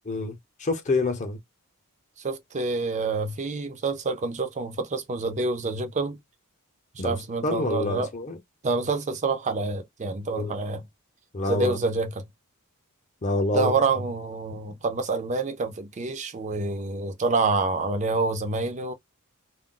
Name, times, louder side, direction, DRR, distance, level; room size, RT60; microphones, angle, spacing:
voice 1, 0.1-1.4 7.0-7.2 7.4-8.4 10.3-10.6 11.3-11.8 13.2-13.7, left 2 dB, 35° left, 0.7 m, -27 dB
voice 2, 2.2-6.2 7.0-8.1 8.6-10.8 11.5-12.2 13.5-18.9, right 3 dB, 30° right, 0.5 m, -27 dB
2.3 x 2.0 x 3.7 m
head